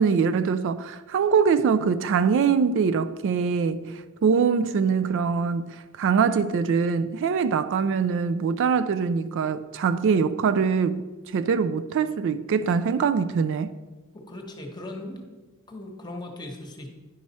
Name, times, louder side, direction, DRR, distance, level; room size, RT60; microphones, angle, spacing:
voice 1, 0.0-11.1 11.3-13.7, right 6 dB, 60° right, 0.3 m, -23 dB
voice 2, 14.1-15.2 15.7-16.9, left 1 dB, 20° left, 1.0 m, -38 dB
10.0 x 4.7 x 4.2 m
head